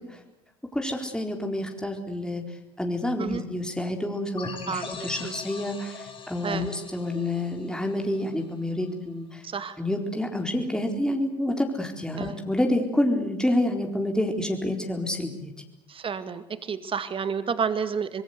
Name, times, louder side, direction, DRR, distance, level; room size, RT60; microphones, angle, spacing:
voice 1, 0.7-9.4 9.8-15.5, left 1 dB, 5° left, 3 dB, 4.2 m, -28 dB
sound 1, 4.4-8.8, left 5 dB, 35° left, 3.7 m, -42 dB
voice 2, 4.7-5.3 6.4-6.7 9.4-9.8 12.2-12.3 15.9-18.2, right 6 dB, 40° right, 12 dB, 2.2 m, -30 dB
25.0 x 21.5 x 8.2 m, 0.92 s
hypercardioid pair, 60°, 15 cm